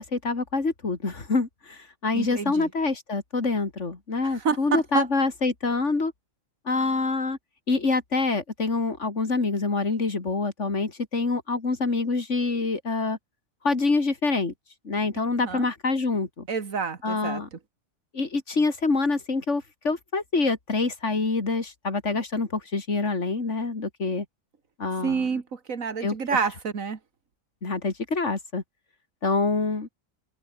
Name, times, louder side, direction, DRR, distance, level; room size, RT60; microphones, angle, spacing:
voice 1, 0.0-6.1 6.7-7.4 7.7-13.2 13.6-14.5 14.8-16.5 17.0-17.5 18.1-24.2 24.8-25.2 26.0-26.1 27.6-28.6 29.2-29.9, left 3 dB, 65° left, 3.2 m, -26 dB
voice 2, 2.1-2.7 4.2-5.1 15.4-15.7 16.5-17.6 25.0-27.0, right 5 dB, 85° right, 2.3 m, -28 dB
omnidirectional pair, 1.4 m